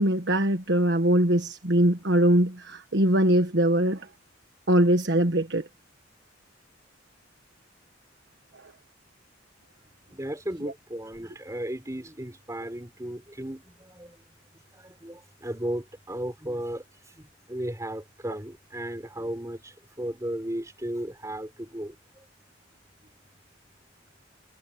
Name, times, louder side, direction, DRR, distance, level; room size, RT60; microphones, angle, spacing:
voice 1, 0.0-4.1 4.7-5.6 10.6-10.7, right 1 dB, 65° right, 1.5 m, -22 dB
voice 2, 10.1-14.1 14.7-22.2, right 1 dB, 15° right, 4.9 m, -35 dB
head